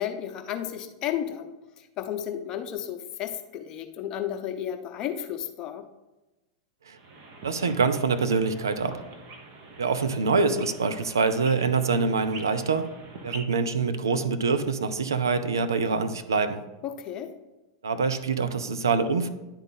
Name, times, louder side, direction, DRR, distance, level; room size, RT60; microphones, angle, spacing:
voice 1, 0.0-1.5 2.0-5.8 16.8-17.3, left 10 dB, 35° left, 6 dB, 0.7 m, -33 dB
sound 1, 7.0-13.4, right 3 dB, 50° right, 1.1 m, -44 dB
voice 2, 7.4-9.0 9.8-12.9 13.2-16.6 17.8-19.3, right 4 dB, 75° right, 10 dB, 0.5 m, -25 dB
9.8 x 4.0 x 4.1 m, 1.1 s
figure-of-eight pair, 90°, 2 cm